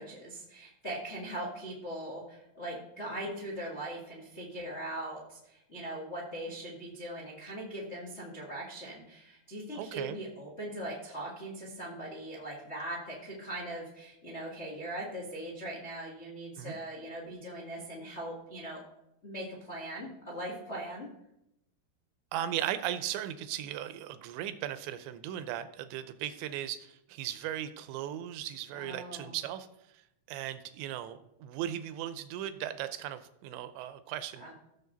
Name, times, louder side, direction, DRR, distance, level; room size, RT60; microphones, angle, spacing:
voice 1, 0.0-18.8 19.2-21.1 28.7-29.3 34.4-34.5, right 1 dB, 85° left, -3 dB, 0.6 m, -40 dB
voice 2, 9.7-10.2 16.6-16.8 22.3-29.7 30.3-34.4, right 11 dB, 80° right, 11 dB, 2.9 m, -37 dB
15.5 x 7.1 x 4.0 m, 0.82 s
omnidirectional pair, 5.2 m